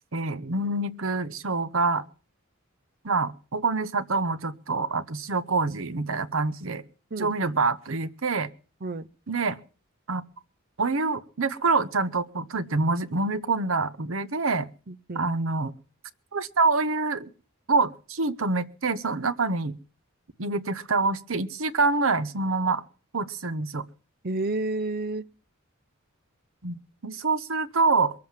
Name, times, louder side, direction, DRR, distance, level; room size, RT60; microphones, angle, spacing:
voice 1, 0.1-2.0 3.0-6.8 7.2-8.5 9.3-9.6 10.1-10.2 10.8-14.7 15.1-15.7 16.3-17.3 17.7-19.7 20.4-22.8 23.1-23.8 26.6-28.1, right 3 dB, 70° right, 1.0 m, -26 dB
voice 2, 7.1-7.6 8.8-9.1 14.9-15.3 24.2-25.2, right 2 dB, 45° right, 0.7 m, -31 dB
22.0 x 7.7 x 7.3 m
head